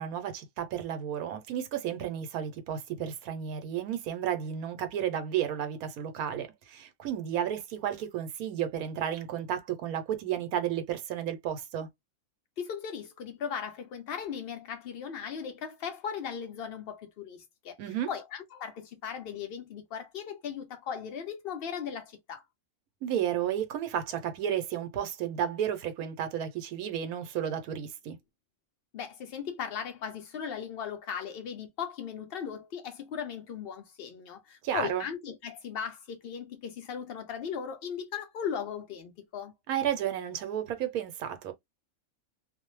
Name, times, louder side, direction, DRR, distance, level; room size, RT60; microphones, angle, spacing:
voice 1, 0.0-11.9 17.8-18.1 23.0-28.2 34.6-35.0 39.7-41.5, right 9 dB, 85° right, 1.1 m, -32 dB
voice 2, 12.6-17.8 18.1-22.4 28.9-39.5, left 7 dB, 85° left, 0.5 m, -38 dB
2.6 x 2.0 x 3.0 m
omnidirectional pair, 1.5 m